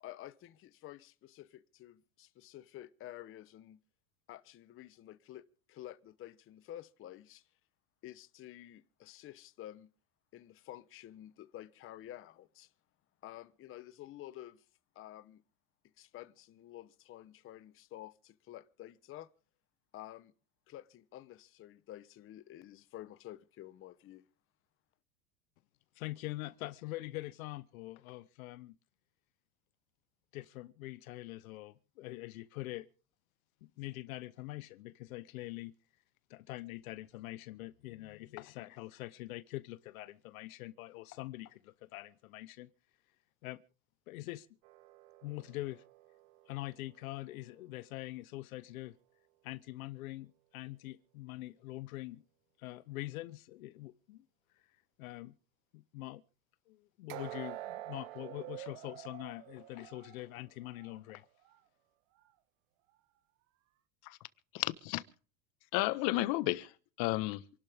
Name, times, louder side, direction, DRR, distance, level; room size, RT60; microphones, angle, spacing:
voice 1, 0.0-3.8 4.3-5.4 5.7-7.5 8.0-9.9 10.3-12.7 13.2-14.6 14.9-15.4 16.0-19.3 19.9-20.3 20.7-24.3, left 13 dB, 30° left, 0.9 m, -50 dB
voice 2, 26.0-28.8 30.3-32.9 33.6-35.7 36.3-42.7 43.4-43.6 44.1-44.5 45.2-45.8 46.5-49.0 49.4-52.2 52.6-54.2 55.0-55.3 55.7-56.2 56.7-61.3, left 18 dB, 80° left, 1.0 m, -44 dB
sound 1, 44.6-47.8 57.1-61.0 61.4-61.6 62.2-62.3, right 15 dB, 65° right, 1.5 m, -49 dB
voice 3, 64.5-65.0 65.7-67.6, left 18 dB, 55° left, 1.4 m, -33 dB
27.5 x 12.0 x 3.5 m
supercardioid pair, 135°, 42 cm